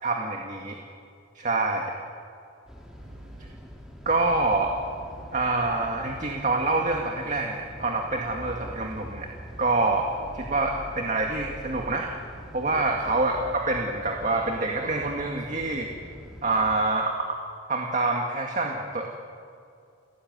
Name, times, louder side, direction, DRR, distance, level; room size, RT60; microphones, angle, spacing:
voice 1, 0.0-0.8 1.4-1.9 3.4-3.5 4.1-4.7 5.3-9.3 9.6-12.1 12.5-15.9 16.4-17.1 17.7-19.1, right 2 dB, 40° right, 1 dB, 2.0 m, -26 dB
sound 1, 2.7-16.8, equal, 5° right, 3.1 m, -46 dB
sound 2, 3.0-3.5 4.2-13.8, equal, 85° right, 4.6 m, -46 dB
30.0 x 16.5 x 9.4 m, 2.5 s
head